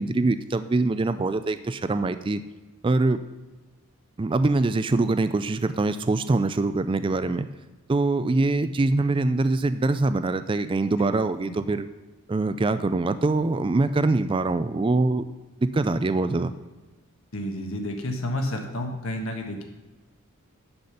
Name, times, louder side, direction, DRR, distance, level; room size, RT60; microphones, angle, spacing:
voice 1, 0.0-2.4 2.8-3.2 4.2-7.5 7.9-11.9 12.3-15.2 15.6-16.5, right 2 dB, 25° right, 12 dB, 0.3 m, -23 dB
voice 2, 17.3-19.6, left 1 dB, 65° left, 3 dB, 1.4 m, -30 dB
10.5 x 5.1 x 5.6 m, 1.2 s
head